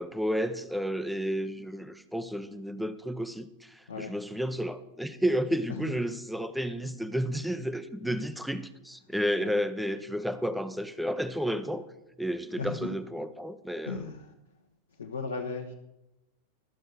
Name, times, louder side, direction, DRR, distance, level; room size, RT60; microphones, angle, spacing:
voice 1, 0.0-11.8 12.2-14.0, equal, ahead, 0.6 m, -31 dB
voice 2, 12.6-12.9 13.9-14.3 15.0-15.7, left 4 dB, 70° left, 0.9 m, -36 dB
12.0 x 6.4 x 6.5 m
figure-of-eight pair, 90°, 0 cm